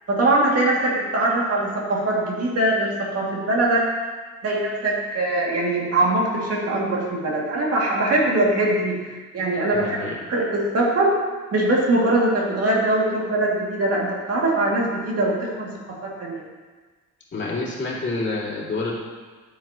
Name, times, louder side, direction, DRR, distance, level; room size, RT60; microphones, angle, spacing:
voice 1, 0.1-3.9 4.4-9.0 9.3-10.0 10.3-11.2 11.5-15.7 16.0-16.4, right 2 dB, 55° right, -3 dB, 2.3 m, -22 dB
voice 2, 9.7-10.2 17.3-18.9, left 3 dB, 40° left, -5 dB, 2.6 m, -28 dB
10.0 x 7.9 x 2.9 m, 1.4 s
cardioid pair, 90°, 30 cm